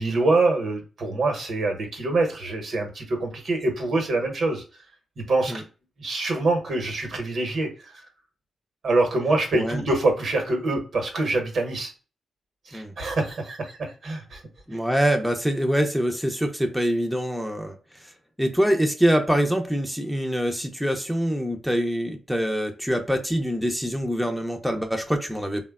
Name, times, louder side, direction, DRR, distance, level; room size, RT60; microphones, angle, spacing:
voice 1, 0.0-4.6 5.2-5.6 6.0-7.7 8.8-11.9 12.7-14.4, right 2 dB, 65° right, 3 dB, 0.9 m, -25 dB
voice 2, 14.7-17.8 18.4-25.6, equal, ahead, 4 dB, 0.5 m, -24 dB
3.2 x 2.1 x 2.3 m, 0.34 s
supercardioid pair, 45°, 0 cm